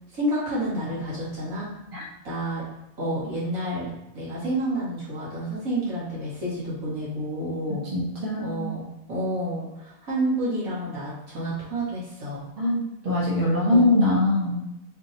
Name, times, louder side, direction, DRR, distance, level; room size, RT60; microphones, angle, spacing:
voice 1, 0.1-1.7 2.2-2.7 3.0-3.9 4.1-7.9 8.4-12.4 13.7-14.0, right 1 dB, 80° right, -8 dB, 2.1 m, -29 dB
voice 2, 7.9-8.6 12.6-14.6, left 1 dB, 45° right, -5 dB, 1.2 m, -22 dB
3.8 x 2.8 x 3.9 m, 0.89 s
omnidirectional pair, 1.4 m